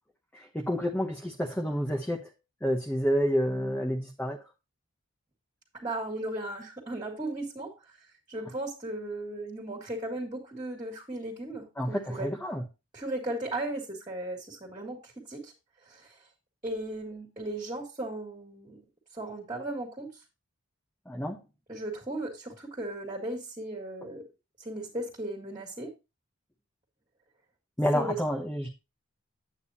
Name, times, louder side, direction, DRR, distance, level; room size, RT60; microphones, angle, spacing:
voice 1, 0.3-2.3 2.6-4.5 11.8-12.6 21.1-21.4 27.8-28.7, equal, 10° left, 2 dB, 0.9 m, -29 dB
voice 2, 5.8-7.7 8.3-12.3 12.9-15.5 15.8-16.1 16.6-18.8 19.1-20.1 21.7-24.2 24.6-25.9 27.9-28.2, right 1 dB, 20° right, -1 dB, 2.1 m, -36 dB
9.0 x 8.6 x 2.8 m, 0.27 s
head